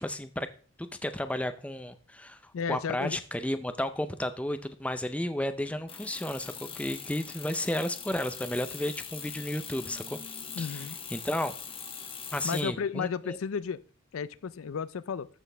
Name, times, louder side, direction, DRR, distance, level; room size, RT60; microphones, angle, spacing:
voice 1, 0.0-0.5 0.8-2.4 2.7-10.2 10.6-11.5 12.3-13.4, left 1 dB, 5° left, 10 dB, 0.5 m, -33 dB
voice 2, 2.5-3.2 10.5-11.0 12.4-13.8 14.1-15.3, left 6 dB, 80° left, 16 dB, 0.4 m, -33 dB
sound 1, 5.9-12.6, left 7 dB, 25° left, 1.1 m, -42 dB
13.5 x 6.2 x 3.4 m, 0.41 s
head